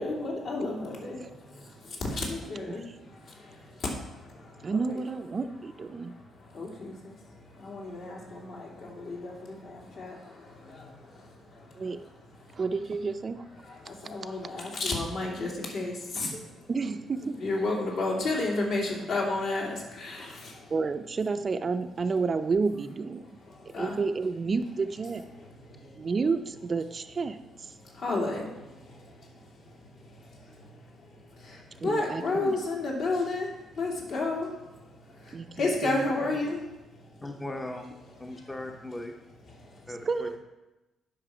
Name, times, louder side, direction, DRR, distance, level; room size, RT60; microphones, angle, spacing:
voice 1, 0.0-5.0 5.9-12.0 12.4-12.6 13.6-16.7 17.3-20.7 23.4-24.0 25.4-26.1 27.8-35.0 35.6-37.2 38.3-38.4 39.5-39.9, left 2 dB, 65° left, -2 dB, 2.7 m, -33 dB
voice 2, 4.6-6.1 11.7-12.0 12.5-13.5 16.7-17.4 20.7-23.3 23.8-25.2 26.0-27.8 31.8-32.6 35.3-36.3 40.1-40.4, right 4 dB, 35° right, 9 dB, 0.4 m, -30 dB
voice 3, 37.2-37.9 38.2-39.1 39.9-40.3, left 1 dB, 15° left, 3 dB, 0.7 m, -38 dB
11.0 x 5.8 x 4.9 m, 1.0 s
cardioid pair, 120°, 0 cm